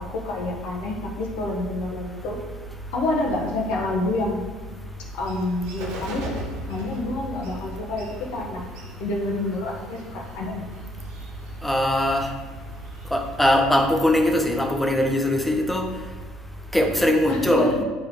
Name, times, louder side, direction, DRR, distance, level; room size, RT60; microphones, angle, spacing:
voice 1, 0.0-2.4 2.9-4.4 5.1-6.3 6.7-8.6 9.0-10.6 17.3-17.7, left 2 dB, 60° left, 0 dB, 1.3 m, -28 dB
Bird, 3.7-15.2, right 2 dB, 60° right, 1.3 m, -41 dB
voice 2, 11.6-12.3 13.1-15.8 16.7-17.7, left 1 dB, 5° left, 2 dB, 1.1 m, -21 dB
9.4 x 4.6 x 3.7 m, 1.3 s
figure-of-eight pair, 65°, 2 cm